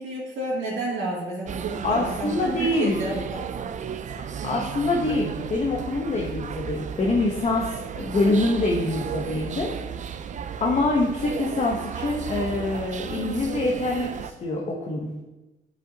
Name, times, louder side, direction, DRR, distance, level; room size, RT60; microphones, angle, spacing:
voice 1, 0.0-3.7 4.4-4.5, right 2 dB, 75° right, -6 dB, 2.1 m, -31 dB
sound 1, 1.5-14.3, right 7 dB, 40° right, 0.4 m, -34 dB
voice 2, 1.8-3.1 4.4-9.7 10.6-15.2, left 2 dB, 35° left, -1 dB, 0.9 m, -25 dB
7.4 x 5.3 x 2.8 m, 1.1 s
cardioid pair, 90°, 20 cm